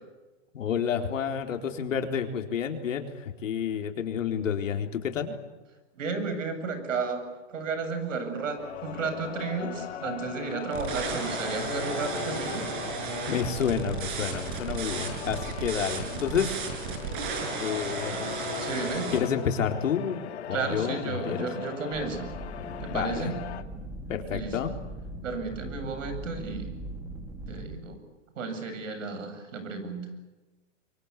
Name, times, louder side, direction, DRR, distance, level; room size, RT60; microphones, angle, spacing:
voice 1, 0.5-5.4 13.3-16.6 17.6-18.3 19.1-21.5 22.9-23.3 24.1-24.7, left 7 dB, 85° left, 5 dB, 4.1 m, -29 dB
voice 2, 6.0-7.2 7.5-12.7 18.6-19.1 20.5-22.3 22.8-23.4 24.3-24.6 25.2-26.7 27.5-28.0 28.4-30.1, right 4 dB, 85° right, 8 dB, 7.9 m, -33 dB
sound 1, 8.6-23.6, left 10 dB, 60° left, 2.1 m, -40 dB
sound 2, 10.7-19.2, right 4 dB, 40° right, 6.1 m, -34 dB
sound 3, 21.9-27.8, right 1 dB, 10° right, 1.6 m, -40 dB
26.0 x 24.0 x 8.4 m, 1.1 s
supercardioid pair, 180°, 37 cm